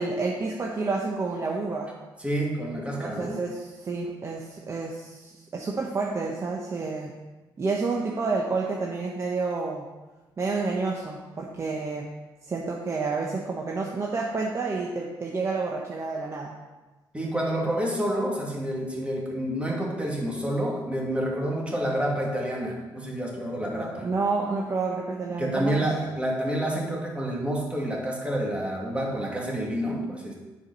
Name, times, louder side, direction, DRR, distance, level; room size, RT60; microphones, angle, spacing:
voice 1, 0.0-1.9 3.0-7.1 7.6-9.8 10.4-12.1 12.5-16.5 23.7-25.9, right 3 dB, 35° right, -2 dB, 1.1 m, -29 dB
voice 2, 2.2-3.4 17.1-24.1 25.4-30.3, right 1 dB, 15° right, -1 dB, 2.2 m, -28 dB
10.0 x 5.0 x 5.5 m, 1.2 s
cardioid pair, 105°, 9 cm